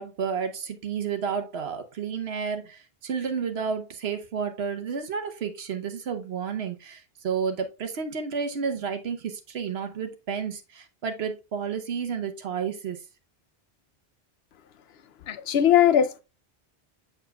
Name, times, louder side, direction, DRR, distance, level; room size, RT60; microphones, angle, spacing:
voice 1, 0.0-13.0, right 6 dB, 80° right, 1.1 m, -31 dB
voice 2, 15.3-16.2, left 10 dB, 80° left, 0.9 m, -20 dB
6.7 x 6.5 x 2.2 m
omnidirectional pair, 1.0 m